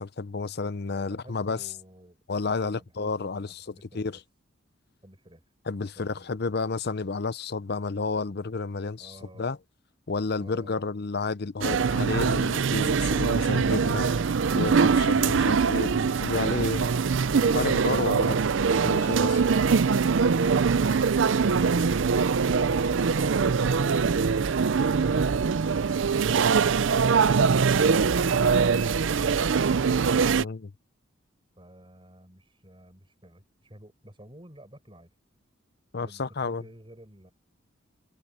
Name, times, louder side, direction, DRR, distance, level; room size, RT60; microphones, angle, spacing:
voice 1, 0.0-1.6 2.3-3.6 3.9-4.2 5.7-9.6 10.1-14.1 14.5-16.9 17.4-18.4 18.8-19.4 30.4-30.7 35.9-36.6, left 4 dB, 55° left, 0.7 m, -31 dB
voice 2, 0.9-4.2 5.0-5.5 5.8-6.4 9.0-9.5 10.4-10.8 31.6-35.1 36.0-37.3, right 1 dB, 25° right, 5.9 m, -52 dB
sound 1, 11.6-30.4, right 5 dB, 70° right, 0.5 m, -23 dB
head